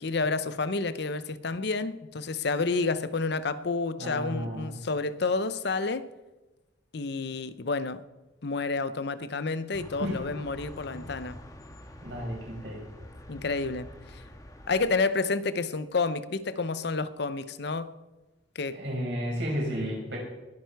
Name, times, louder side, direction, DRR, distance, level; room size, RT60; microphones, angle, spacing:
voice 1, 0.0-6.1 6.9-8.0 8.4-11.4 13.3-14.2 14.7-17.9 18.6-18.8, left 3 dB, 60° left, 0.7 m, -30 dB
voice 2, 4.0-4.7 10.0-10.2 12.0-12.8 18.7-20.2, equal, 70° right, 5.9 m, -32 dB
sound 1, 9.7-14.9, left 1 dB, 20° left, 1.6 m, -46 dB
21.5 x 9.2 x 4.7 m
head